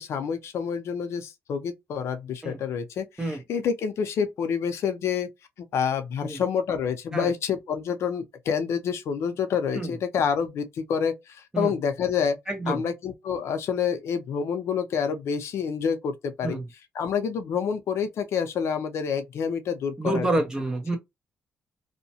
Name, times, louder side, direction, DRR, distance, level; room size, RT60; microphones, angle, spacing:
voice 1, 0.0-5.3 5.7-12.4 12.7-16.6 16.9-20.3, left 7 dB, 75° left, 0.6 m, -28 dB
voice 2, 12.5-12.8 16.4-16.6 20.0-21.0, right 2 dB, 15° right, 0.8 m, -27 dB
2.7 x 2.1 x 2.7 m
cardioid pair, 135°, 5 cm